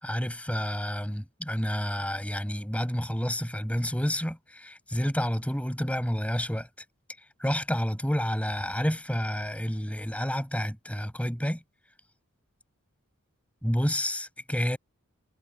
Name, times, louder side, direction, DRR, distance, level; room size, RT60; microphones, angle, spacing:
voice 1, 0.0-6.7 7.4-11.6 13.6-14.8, equal, 5° left, 7.2 m, -29 dB
head